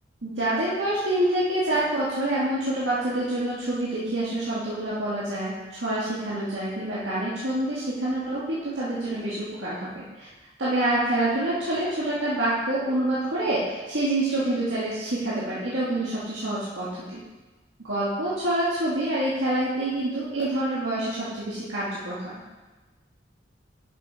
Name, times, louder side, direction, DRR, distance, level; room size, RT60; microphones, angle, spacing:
voice 1, 0.2-10.3 10.6-17.2 17.8-22.3, right 1 dB, 85° right, -9 dB, 1.8 m, -27 dB
7.6 x 6.6 x 4.7 m, 1.2 s
head